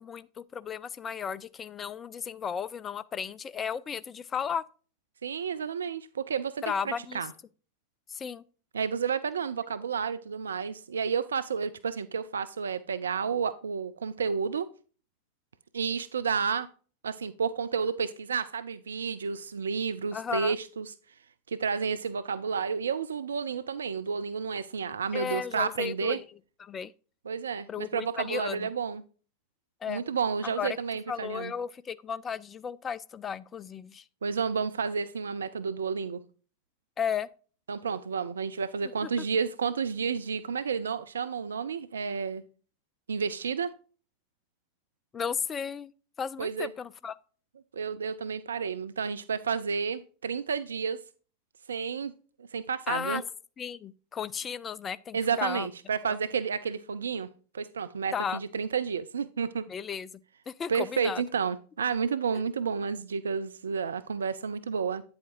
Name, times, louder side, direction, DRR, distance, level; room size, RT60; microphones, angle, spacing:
voice 1, 0.0-4.6 6.6-7.2 8.1-8.4 20.1-20.6 25.1-26.2 26.6-26.9 27.7-28.7 29.8-30.0 30.4-30.8 31.1-34.0 37.0-37.3 39.0-39.1 45.1-45.9 46.2-47.2 52.9-53.2 53.6-55.7 56.1-56.2 58.1-58.4 59.7-60.1 60.5-61.2 62.4-62.5, left 7 dB, 20° left, 0.4 m, -34 dB
voice 2, 5.2-7.3 8.7-14.7 15.7-16.7 17.0-20.9 21.5-26.2 27.3-29.0 29.9-31.5 34.2-36.2 37.7-42.4 43.1-43.7 46.4-46.7 47.7-51.0 51.7-52.1 52.5-53.2 55.1-57.3 57.5-59.7 60.7-65.0, right 6 dB, 70° right, 0.4 m, -31 dB
9.0 x 7.8 x 2.5 m
figure-of-eight pair, 90°, 0 cm